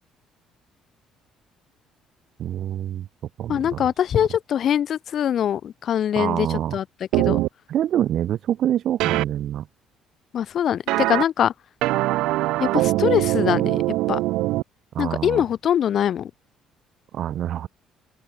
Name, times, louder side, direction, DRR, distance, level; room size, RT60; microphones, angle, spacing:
voice 1, 2.4-3.1 3.4-3.8 6.1-6.8 7.7-9.7 14.9-15.4 17.1-17.7, right 11 dB, 65° right, 1.8 m, -26 dB
voice 2, 3.5-6.5 6.7-6.8 7.2-7.4 10.3-11.5 12.6-13.8 14.1-14.2 15.0-16.3, left 9 dB, 55° left, 4.4 m, -23 dB
sound 1, 7.1-7.5 9.0-9.2 10.9-11.2 11.8-14.6, right 18 dB, 85° right, 1.8 m, -22 dB
open air
cardioid pair, 95°, 0 cm